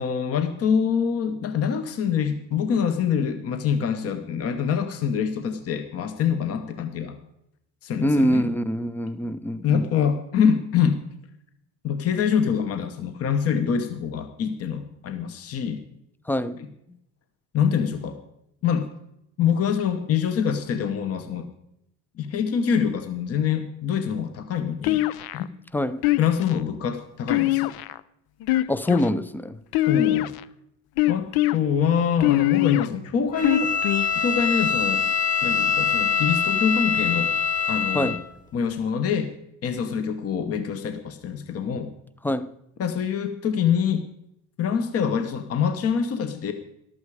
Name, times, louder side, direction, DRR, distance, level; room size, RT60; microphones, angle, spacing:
voice 1, 0.0-7.2 7.8-8.5 9.6-11.0 11.8-15.8 17.5-18.2 18.6-18.9 19.4-21.5 22.2-25.0 25.3-25.4 26.2-27.7 29.9-30.3 31.1-33.7 34.2-35.0 35.4-37.3 37.7-38.1 38.5-39.3 39.6-41.9 42.8-44.0 44.6-46.5, left 7 dB, 40° left, 1.0 m, -25 dB
voice 2, 8.0-9.8 16.3-16.6 25.7-26.0 28.7-29.6 37.9-38.2 42.2-42.5, left 1 dB, 5° left, 0.4 m, -24 dB
sound 1, 24.8-25.5 26.0-26.6 27.3-28.0 28.4-29.1 29.7-30.4 31.0-31.5 32.2-32.9 33.4-34.1, left 16 dB, 85° left, 0.7 m, -22 dB
Bowed string instrument, 33.3-38.2, left 6 dB, 20° left, 1.5 m, -24 dB
14.5 x 12.0 x 4.8 m
cardioid pair, 165°, 36 cm